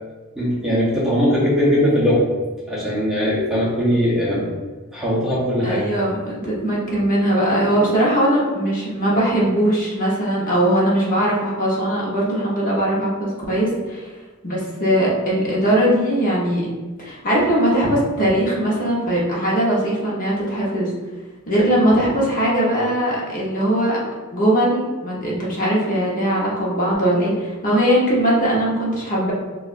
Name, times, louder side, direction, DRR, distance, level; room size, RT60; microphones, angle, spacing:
voice 1, 0.4-2.3 2.7-4.5 4.9-5.9, equal, ahead, -8 dB, 0.7 m, -20 dB
voice 2, 5.6-14.0 14.4-16.7 17.0-20.9 21.5-24.0 24.3-29.3, right 1 dB, 40° left, -5 dB, 0.9 m, -20 dB
4.8 x 2.4 x 2.5 m, 1.3 s
head